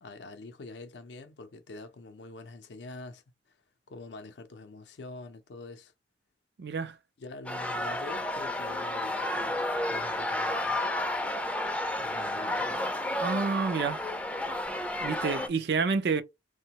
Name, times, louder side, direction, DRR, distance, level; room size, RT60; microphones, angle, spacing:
voice 1, 0.0-3.6 3.9-5.9 7.2-10.8 12.0-12.8, left 3 dB, 75° left, 0.5 m, -45 dB
voice 2, 6.6-7.0 13.2-14.0 15.0-16.2, right 5 dB, 65° right, 0.4 m, -28 dB
sound 1, 7.5-15.5, left 1 dB, 10° left, 0.4 m, -31 dB
2.8 x 2.1 x 2.8 m
head